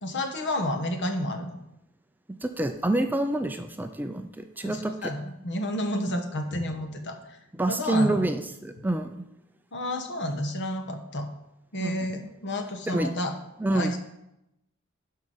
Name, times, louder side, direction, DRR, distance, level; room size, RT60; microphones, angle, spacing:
voice 1, 0.0-1.6 4.6-7.4 7.7-8.3 9.7-11.3 11.7-13.3 13.7-14.0, left 1 dB, 55° left, 6 dB, 1.2 m, -30 dB
voice 2, 2.3-5.1 7.5-9.1 11.8-12.2 12.9-13.1 13.6-13.9, right 1 dB, 10° right, 7 dB, 0.4 m, -27 dB
11.5 x 4.7 x 5.5 m, 0.86 s
head